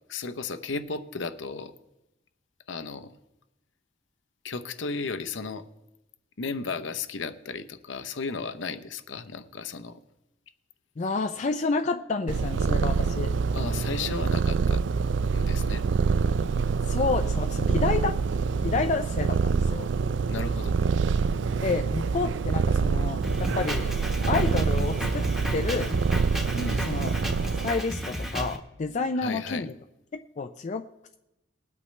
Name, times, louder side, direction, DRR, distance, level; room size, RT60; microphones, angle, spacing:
voice 1, 0.1-1.7 2.7-3.1 4.4-5.6 6.4-10.0 13.4-14.8 15.3-15.8 17.8-17.9 20.3-20.8 26.5-26.9 29.2-29.7, left 4 dB, 70° left, 10 dB, 0.7 m, -34 dB
voice 2, 11.0-13.3 16.9-18.2 18.6-19.9 21.6-23.9 24.3-25.9 26.8-27.2 27.6-29.7 30.1-30.8, left 4 dB, 40° left, 7 dB, 0.4 m, -29 dB
Purr, 12.3-27.7, right 5 dB, 65° right, 0.4 m, -26 dB
Drum kit, 23.2-28.6, equal, ahead, 1.2 m, -33 dB
20.5 x 8.4 x 3.2 m, 0.93 s
head